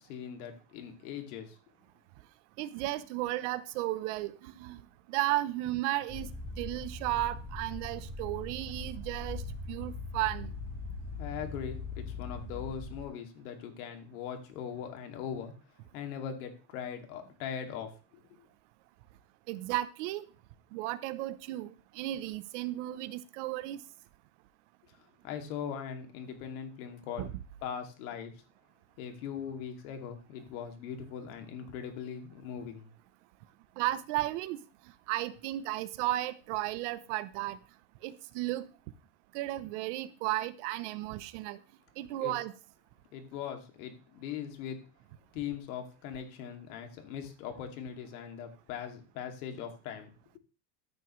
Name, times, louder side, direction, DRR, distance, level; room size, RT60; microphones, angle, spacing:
voice 1, 0.0-1.6 11.2-15.5 15.9-18.4 25.2-27.3 27.6-28.3 29.0-32.9 42.2-42.3 43.1-44.8 45.3-50.1, left 8 dB, 60° left, 2.5 m, -40 dB
voice 2, 2.6-4.8 5.1-6.3 6.6-9.4 9.7-10.5 19.5-20.3 20.7-23.8 27.2-27.3 33.8-34.6 35.1-37.6 38.0-38.7 39.3-41.6 42.0-42.5, right 16 dB, 45° right, 0.8 m, -34 dB
sound 1, 6.1-13.1, left 3 dB, 15° left, 3.0 m, -41 dB
14.5 x 9.4 x 3.2 m
supercardioid pair, 175°, 48 cm